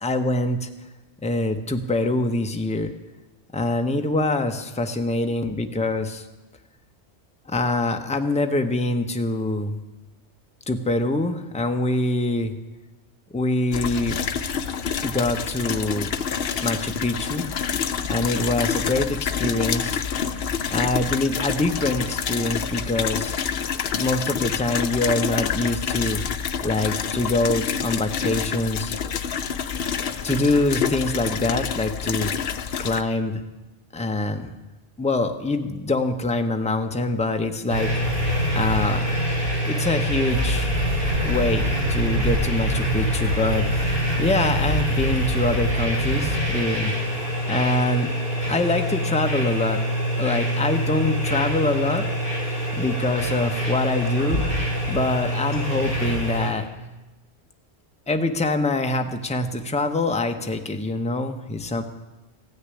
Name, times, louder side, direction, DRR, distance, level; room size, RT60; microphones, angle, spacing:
voice 1, 0.0-0.7 1.2-2.9 3.5-6.3 7.5-9.7 10.7-12.5 13.3-14.2 15.0-16.1 16.6-17.4 18.1-20.0 20.7-23.3 24.0-26.2 26.6-28.9 30.2-32.3 32.8-33.4 33.9-34.5 35.0-37.9 38.5-39.0 39.6-40.7 41.2-46.9 47.5-48.1 48.5-49.8 50.2-52.1 52.8-54.6 54.9-56.6 58.1-61.8, left 2 dB, 5° left, 5 dB, 0.8 m, -24 dB
sound 1, 13.7-33.0, left 7 dB, 65° left, 0.9 m, -27 dB
sound 2, 37.7-56.5, equal, 50° right, 4.8 m, -24 dB
15.5 x 6.6 x 9.8 m, 1.1 s
omnidirectional pair, 1.1 m